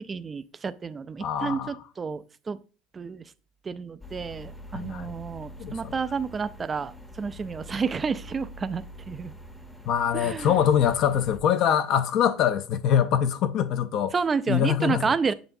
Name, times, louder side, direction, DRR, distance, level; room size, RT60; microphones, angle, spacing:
voice 1, 0.0-2.6 2.9-3.2 3.6-6.9 7.2-9.3 10.1-10.5 14.1-15.3, right 5 dB, 20° right, 0.3 m, -30 dB
voice 2, 1.2-1.7 4.7-5.1 5.6-5.9 9.9-14.1 14.5-15.1, left 9 dB, 50° left, 0.5 m, -24 dB
sound 1, 4.0-11.4, equal, 5° left, 0.7 m, -44 dB
7.7 x 6.8 x 2.6 m
cardioid pair, 145°, 0 cm